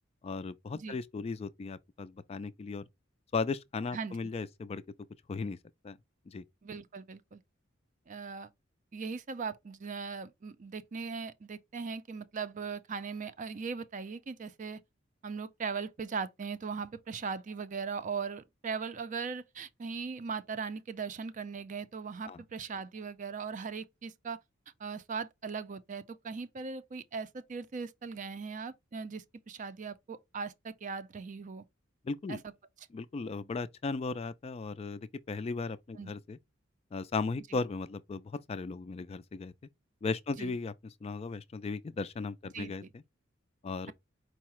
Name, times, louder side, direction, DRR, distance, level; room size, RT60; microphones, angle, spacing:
voice 1, 0.2-2.9 3.3-4.8 5.3-5.6 5.8-6.0 6.3-6.4 22.2-22.4 32.0-32.4 32.9-36.4 36.9-39.5 40.0-40.7 41.0-42.8 43.6-43.9, left 4 dB, 30° left, 0.3 m, -36 dB
voice 2, 3.9-4.3 6.6-7.4 8.1-8.5 8.9-14.8 15.2-24.4 24.8-31.6 32.3-32.5 36.0-36.1 40.4-40.5 42.5-42.9, right 5 dB, 40° right, 0.4 m, -39 dB
4.7 x 2.1 x 4.4 m
head